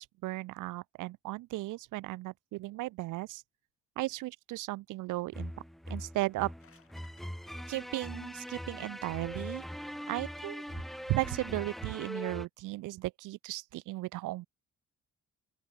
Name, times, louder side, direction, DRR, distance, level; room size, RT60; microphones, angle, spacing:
voice 1, 0.0-3.4 4.0-5.5 5.9-6.5 7.7-9.6 10.1-10.6 11.1-14.5, right 19 dB, 90° right, 0.8 m, -36 dB
sound 1, 5.3-12.5, equal, ahead, 0.4 m, -41 dB
sound 2, 6.3-7.3, left 7 dB, 45° left, 6.8 m, -64 dB
open air
cardioid pair, 90°, 30 cm